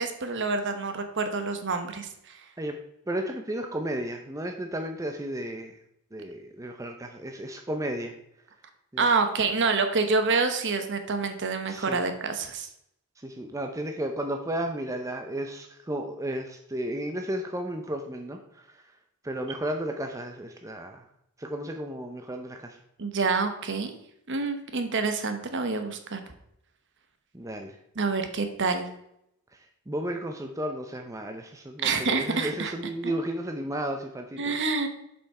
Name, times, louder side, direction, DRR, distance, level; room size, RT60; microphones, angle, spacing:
voice 1, 0.0-2.4 9.0-12.7 23.0-23.9 24.3-26.2 28.0-28.9 31.8-32.7 33.0-33.1 34.4-34.9, right 4 dB, 55° right, 7 dB, 1.0 m, -27 dB
voice 2, 3.1-5.8 6.1-8.1 8.9-9.1 11.7-12.0 13.2-18.8 19.2-21.0 21.4-22.8 27.3-27.8 29.5-29.6 29.9-34.6, right 1 dB, 15° right, 4 dB, 0.6 m, -33 dB
7.3 x 5.6 x 4.8 m, 0.77 s
head